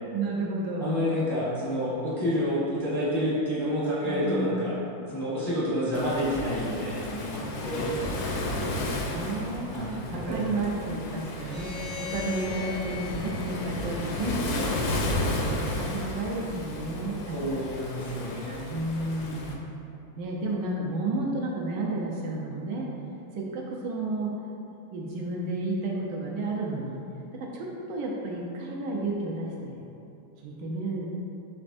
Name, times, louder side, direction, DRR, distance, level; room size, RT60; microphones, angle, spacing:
voice 1, 0.1-0.9 4.0-4.5 7.4-8.1 8.7-9.7 10.1-14.8 15.4-17.7 18.7-19.6 20.2-22.9 23.3-24.3 24.9-27.0 27.4-29.8 30.4-31.1, right 2 dB, 75° right, -2 dB, 1.2 m, -32 dB
voice 2, 0.8-4.7 5.1-7.9 9.7-10.6 17.3-18.7, equal, 25° left, -12 dB, 0.5 m, -29 dB
Waves surf, 5.9-19.5, left 2 dB, 75° left, 0.9 m, -33 dB
sound 1, 11.3-14.6, left 6 dB, 55° right, 0.6 m, -40 dB
5.2 x 3.1 x 2.6 m, 2.8 s
omnidirectional pair, 2.1 m